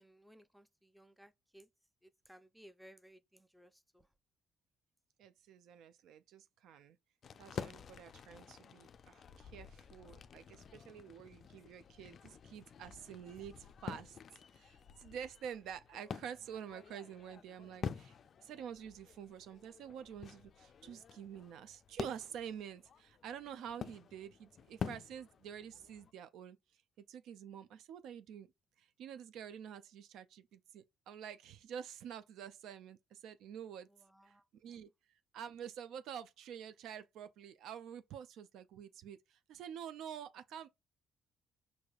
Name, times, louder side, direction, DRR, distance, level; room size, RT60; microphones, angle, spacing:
voice 1, 0.0-1.7 2.0-4.1 33.9-34.5, equal, 5° right, 0.5 m, -61 dB
voice 2, 5.2-7.0 7.4-14.2 14.5-26.6 27.1-28.5 28.8-33.9 34.2-34.9 35.3-40.7, right 8 dB, 75° right, 0.4 m, -48 dB
sound 1, 7.2-26.1, left 7 dB, 55° left, 0.3 m, -49 dB
4.7 x 2.6 x 2.3 m
supercardioid pair, 70°, 0 cm